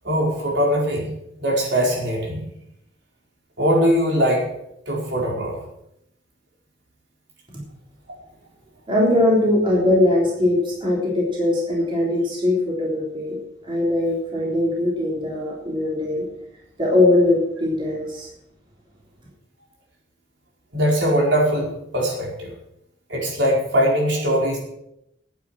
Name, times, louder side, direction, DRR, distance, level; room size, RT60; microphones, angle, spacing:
voice 1, 0.0-1.1 1.4-2.4 3.6-4.4 4.9-5.6 20.7-22.5 23.1-24.6, equal, 65° right, -2 dB, 4.7 m, -21 dB
voice 2, 8.9-13.4 13.6-16.2 16.8-18.3, left 1 dB, 25° right, -4 dB, 3.6 m, -20 dB
10.5 x 9.5 x 7.7 m, 0.79 s
head